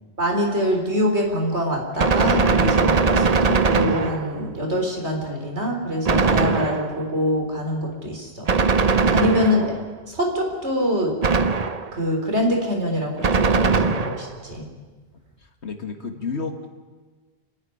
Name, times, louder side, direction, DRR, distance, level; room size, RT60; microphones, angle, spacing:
voice 1, 0.2-8.5 9.1-9.7 10.1-11.1 11.9-14.7, equal, 85° right, 1 dB, 4.1 m, -24 dB
Gunshot gunfire, 2.0-4.5 6.1-7.1 8.5-9.9 11.2-12.0 13.2-14.4, right 4 dB, 40° right, 0.8 m, -20 dB
voice 2, 13.5-14.2 15.4-16.7, left 4 dB, 80° left, 6 dB, 2.1 m, -33 dB
29.0 x 9.8 x 9.9 m, 1.4 s
omnidirectional pair, 1.1 m